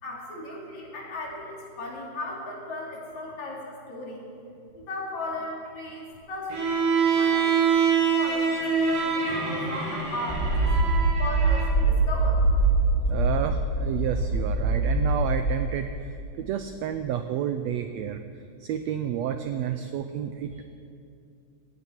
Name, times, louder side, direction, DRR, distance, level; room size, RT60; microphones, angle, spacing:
voice 1, 0.0-4.3 4.7-7.7 8.1-10.7 11.2-12.4, left 2 dB, 65° left, -2 dB, 3.9 m, -36 dB
Bowed string instrument, 6.5-11.7, right 6 dB, 45° right, 3.2 m, -25 dB
sound 1, 10.3-15.6, right 2 dB, 5° left, 4.0 m, -23 dB
voice 2, 13.1-18.2 18.6-20.7, right 9 dB, 85° right, 8 dB, 1.5 m, -30 dB
16.5 x 16.5 x 4.5 m, 2.6 s
omnidirectional pair, 3.6 m